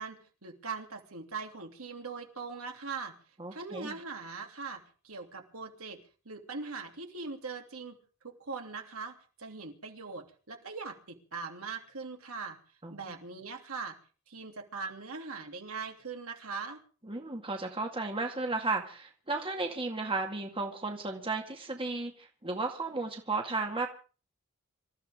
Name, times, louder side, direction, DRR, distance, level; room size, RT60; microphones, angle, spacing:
voice 1, 0.0-3.1 3.5-8.0 8.2-12.6 12.9-14.0 14.3-16.8, right 4 dB, 70° right, 2 dB, 3.3 m, -41 dB
voice 2, 3.4-4.0 12.8-13.0 17.1-23.9, right 3 dB, 25° right, 2 dB, 2.1 m, -34 dB
26.0 x 14.0 x 3.7 m, 0.38 s
head